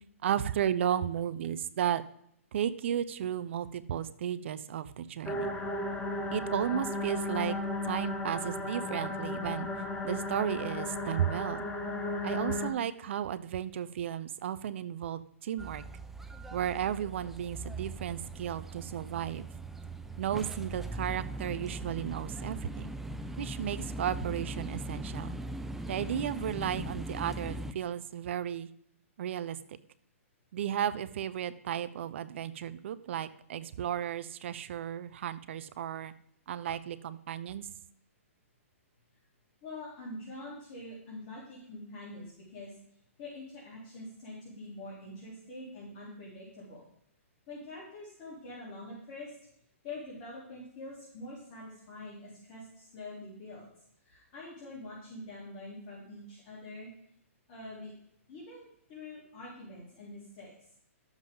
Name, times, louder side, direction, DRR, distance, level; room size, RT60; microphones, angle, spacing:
voice 1, 0.2-2.0 2.5-5.5 6.3-7.6 7.8-9.7 10.0-11.7 12.2-15.8 16.5-19.5 20.2-22.9 23.4-25.4 25.9-28.7 29.2-29.6 30.5-36.1 36.5-37.7, right 10 dB, 55° right, 15 dB, 0.7 m, -34 dB
sound 1, 5.2-12.7, left 2 dB, 15° left, 1.2 m, -35 dB
sound 2, 15.6-27.7, right 1 dB, 5° right, 0.4 m, -40 dB
voice 2, 39.6-42.7 43.2-46.8 47.5-49.4 49.8-53.7 54.0-56.9 57.5-57.9 58.3-60.5, left 2 dB, 40° left, -6 dB, 3.6 m, -45 dB
11.5 x 7.3 x 3.9 m, 0.70 s
hypercardioid pair, 145°, 8 cm